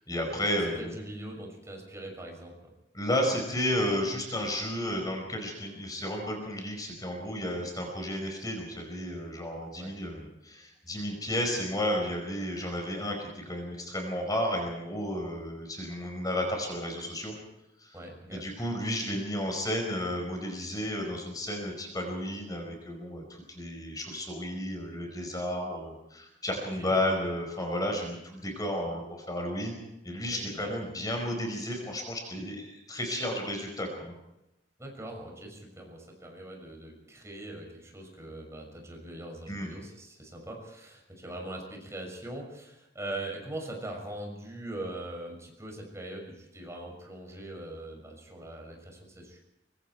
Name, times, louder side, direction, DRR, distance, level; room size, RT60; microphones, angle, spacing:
voice 1, 0.1-0.9 2.9-17.3 17.8-17.9 18.3-29.8 30.0-34.1 39.5-39.7, left 1 dB, 20° left, 3 dB, 4.9 m, -32 dB
voice 2, 0.8-2.7 9.7-10.0 17.9-18.4 26.6-27.0 30.3-30.8 34.8-49.4, right 1 dB, 15° right, 1 dB, 6.5 m, -41 dB
24.5 x 24.5 x 4.6 m, 0.88 s
head